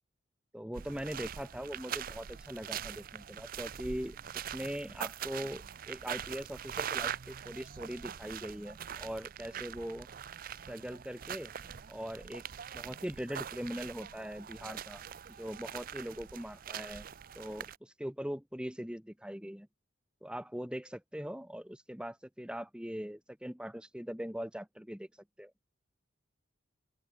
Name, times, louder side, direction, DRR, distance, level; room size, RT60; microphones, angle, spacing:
voice 1, 0.5-10.1 10.7-11.5 11.9-12.4 12.7-15.0 15.4-17.1 17.4-19.7 20.2-25.1 25.4-25.5, equal, 5° right, 1.1 m, -41 dB
sound 1, 0.7-17.8, right 9 dB, 45° right, 0.5 m, -43 dB
open air
head